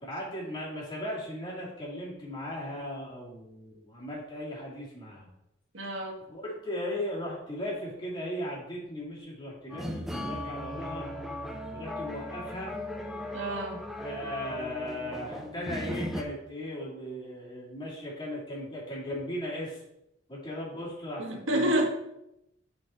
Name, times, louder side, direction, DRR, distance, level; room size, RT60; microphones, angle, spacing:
voice 1, 0.0-5.3 6.3-11.1 11.7-12.7 14.0-19.8 20.3-21.9, equal, 25° left, -6 dB, 2.6 m, -37 dB
voice 2, 5.7-6.2 13.3-13.8 21.2-21.9, right 1 dB, 85° right, 2 dB, 1.3 m, -28 dB
sound 1, 9.7-16.2, left 1 dB, ahead, 0.5 m, -37 dB
8.7 x 4.6 x 4.3 m, 0.84 s
head